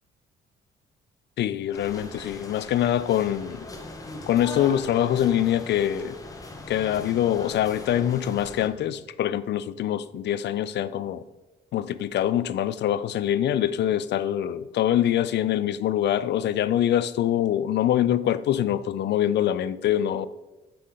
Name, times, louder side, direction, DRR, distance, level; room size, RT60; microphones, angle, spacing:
voice 1, 1.4-3.7 4.3-6.2 6.7-11.2 11.7-20.3, left 11 dB, 60° left, 0.4 m, -24 dB
sound 1, 1.7-8.7, left 2 dB, 15° left, 1.1 m, -40 dB
8.5 x 5.7 x 3.7 m
cardioid pair, 90°, 20 cm